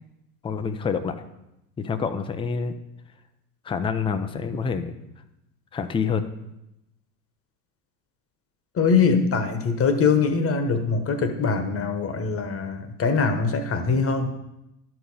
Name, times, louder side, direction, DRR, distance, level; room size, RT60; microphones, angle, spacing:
voice 1, 0.4-1.1 1.8-2.7 3.7-4.9 5.7-6.2, left 5 dB, 10° left, 9 dB, 0.5 m, -27 dB
voice 2, 8.8-14.3, left 5 dB, 25° left, 7 dB, 1.2 m, -22 dB
11.5 x 5.0 x 5.4 m, 0.89 s
hypercardioid pair, 95°, 49 cm